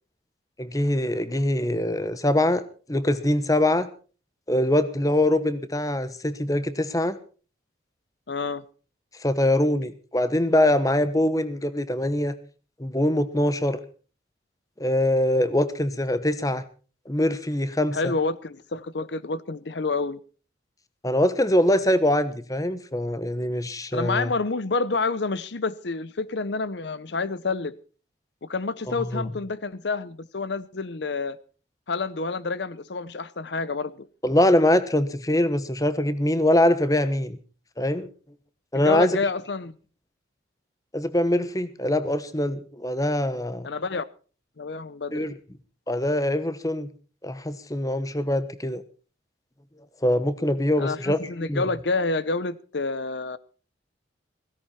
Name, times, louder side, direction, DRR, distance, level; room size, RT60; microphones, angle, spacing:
voice 1, 0.6-2.6 2.9-3.9 4.5-7.2 9.2-12.3 12.8-13.8 14.8-16.6 17.1-18.1 21.0-24.3 28.9-29.3 34.2-37.4 37.8-38.1 38.7-39.2 40.9-43.7 45.1-45.3 45.9-46.9 47.2-48.8 50.0-51.7, left 1 dB, 20° left, 1.1 m, -23 dB
voice 2, 8.3-8.6 17.9-20.2 23.9-27.7 28.4-31.4 31.9-34.1 38.7-39.7 43.6-44.0 44.6-45.3 50.8-53.4, left 3 dB, 70° left, 0.7 m, -28 dB
16.5 x 16.0 x 4.3 m
head